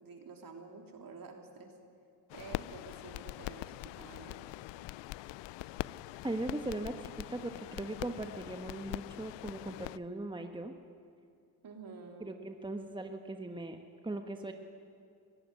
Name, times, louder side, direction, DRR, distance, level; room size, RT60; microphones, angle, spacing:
voice 1, 0.0-1.7 2.3-4.4 11.6-12.3, right 4 dB, 50° right, 2 dB, 3.3 m, -49 dB
sound 1, 2.3-10.0, left 17 dB, 80° left, 0.5 m, -43 dB
voice 2, 6.2-10.7 12.2-13.8 14.0-14.5, right 2 dB, 10° right, 5 dB, 1.3 m, -39 dB
19.5 x 15.0 x 9.8 m, 2.4 s
supercardioid pair, 60°, 43 cm